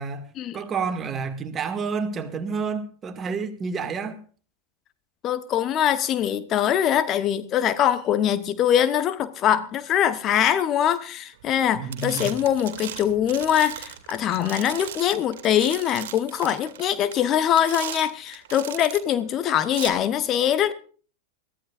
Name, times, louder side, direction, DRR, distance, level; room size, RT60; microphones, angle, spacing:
voice 1, 0.5-4.2 11.7-12.3, right 5 dB, 25° right, 2.1 m, -29 dB
voice 2, 5.2-20.7, left 10 dB, 35° left, 1.0 m, -23 dB
sound 1, 11.4-11.6 11.9-19.1 19.6-19.9, right 11 dB, 60° right, 2.3 m, -38 dB
23.0 x 14.5 x 2.5 m
figure-of-eight pair, 90°, 0 cm